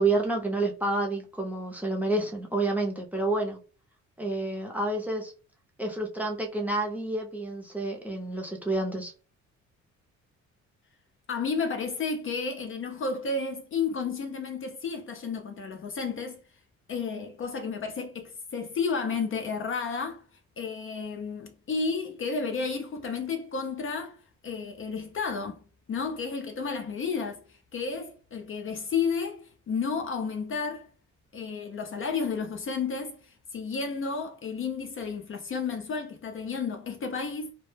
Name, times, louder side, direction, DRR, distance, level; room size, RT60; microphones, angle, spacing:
voice 1, 0.0-3.6 4.2-5.3 5.8-9.1, right 2 dB, 5° right, 0.6 m, -29 dB
voice 2, 11.3-16.4 16.9-20.2 20.6-24.2 24.4-25.6 25.9-27.4 27.7-30.9 31.3-37.5, left 5 dB, 45° left, 0.5 m, -32 dB
2.1 x 2.0 x 3.1 m
cardioid pair, 90°, 30 cm